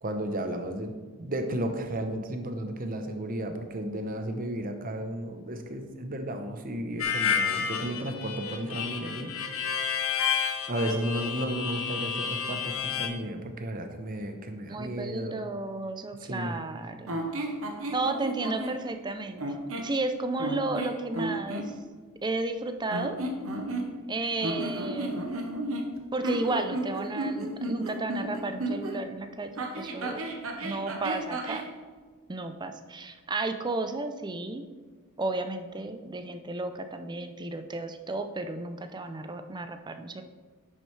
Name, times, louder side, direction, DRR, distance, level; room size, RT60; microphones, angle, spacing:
voice 1, 0.0-0.9 1.2-9.3 10.7-15.4 16.2-16.6, right 1 dB, 40° right, 6 dB, 0.8 m, -33 dB
Harmonica, 7.0-13.1, left 7 dB, 65° left, 1.0 m, -30 dB
voice 2, 14.7-17.2 17.9-19.4 19.8-21.7 22.2-23.2 24.1-25.2 26.1-30.3 30.6-31.7 32.3-34.7 35.2-40.2, right 2 dB, 20° right, 7 dB, 0.5 m, -33 dB
sound 1, 17.1-18.8 19.4-20.0 20.4-21.7 22.9-24.1 24.4-29.0 29.6-31.7, right 1 dB, 65° right, 1.1 m, -33 dB
10.0 x 7.6 x 3.3 m, 1.4 s
head